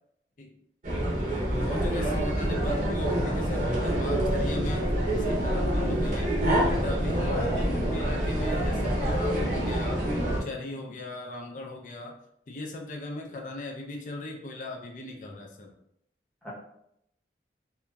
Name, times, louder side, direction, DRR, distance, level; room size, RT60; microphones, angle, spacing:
sound 1, 0.8-10.4, right 1 dB, 45° right, 0.7 m, -26 dB
voice 1, 1.6-6.3 6.6-10.0 10.4-12.2 12.5-15.7, left 2 dB, 45° left, 1 dB, 0.4 m, -38 dB
voice 2, 7.3-7.8 16.4-16.5, left 1 dB, 5° left, -7 dB, 0.7 m, -37 dB
2.8 x 2.4 x 2.2 m, 0.76 s
head